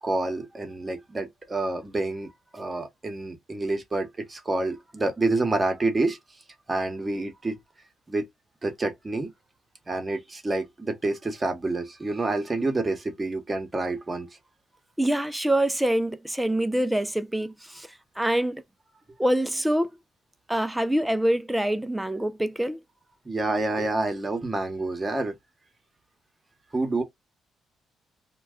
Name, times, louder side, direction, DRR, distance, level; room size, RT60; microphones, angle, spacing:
voice 1, 0.0-6.2 6.7-7.6 8.1-8.2 8.6-9.3 9.9-14.3 23.2-25.3 26.7-27.0, right 2 dB, 25° right, 1.0 m, -28 dB
voice 2, 15.0-17.9 18.2-18.6 19.2-19.9 20.5-22.8, right 1 dB, 5° right, 0.4 m, -25 dB
2.3 x 2.2 x 3.5 m
cardioid pair, 90°, 0 cm